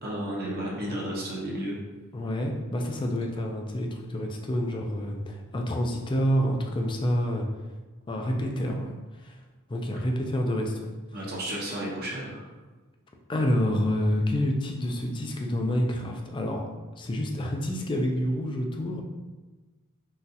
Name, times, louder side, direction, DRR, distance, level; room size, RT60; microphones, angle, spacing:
voice 1, 0.0-1.8 11.1-12.5, right 1 dB, 45° right, -4 dB, 0.8 m, -32 dB
voice 2, 2.1-7.5 8.1-9.4 9.7-10.9 13.3-16.6 17.0-19.0, equal, 20° left, 2 dB, 0.3 m, -28 dB
3.9 x 2.4 x 2.7 m, 1.2 s
head